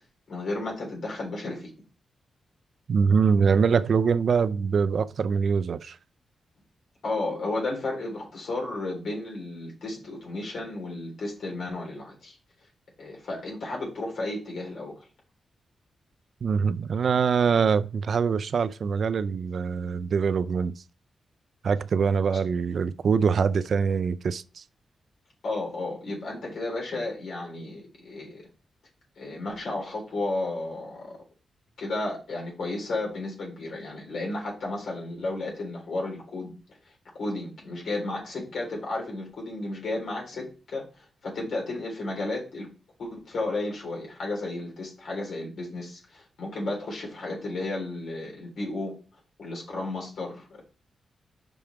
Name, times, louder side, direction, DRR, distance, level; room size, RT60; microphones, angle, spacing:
voice 1, 0.3-1.7 7.0-12.4 13.0-14.9 22.3-22.4 25.4-28.5 29.2-31.1 31.8-36.5 37.1-42.7 43.0-48.9 49.4-50.6, left 2 dB, 65° left, 3.6 m, -33 dB
voice 2, 2.9-6.0 16.4-20.8 21.6-24.6, right 6 dB, 50° right, 0.3 m, -24 dB
5.8 x 5.4 x 4.6 m
wide cardioid pair, 160°, 0 cm